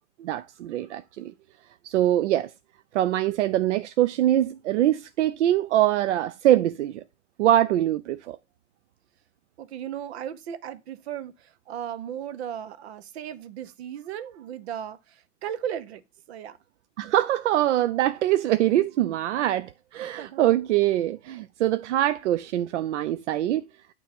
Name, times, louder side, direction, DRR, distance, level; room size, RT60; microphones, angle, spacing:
voice 1, 0.2-1.3 1.8-2.5 2.9-7.0 7.4-8.4 17.0-23.6, right 13 dB, 80° right, 0.5 m, -23 dB
voice 2, 9.6-16.0 16.3-16.6 20.2-20.4, right 9 dB, 65° right, 1.0 m, -36 dB
8.9 x 3.0 x 5.3 m
hypercardioid pair, 140°, 35 cm